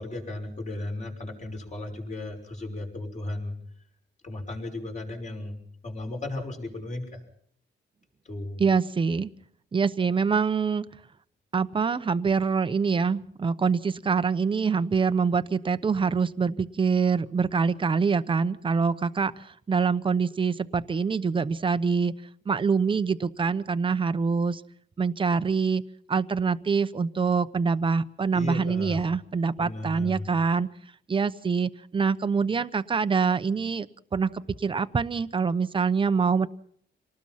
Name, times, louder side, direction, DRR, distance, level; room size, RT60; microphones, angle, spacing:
voice 1, 0.0-3.6 4.2-7.2 8.2-8.6 28.3-29.0 29.6-30.2, left 2 dB, 35° left, 2 dB, 5.9 m, -35 dB
voice 2, 8.6-9.3 9.7-10.8 11.5-22.1 22.5-24.6 25.0-25.8 26.1-30.7 31.1-33.9 34.1-34.3 34.6-36.5, right 5 dB, 25° right, 12 dB, 0.9 m, -25 dB
27.0 x 19.0 x 5.8 m, 0.62 s
cardioid pair, 130°, 20 cm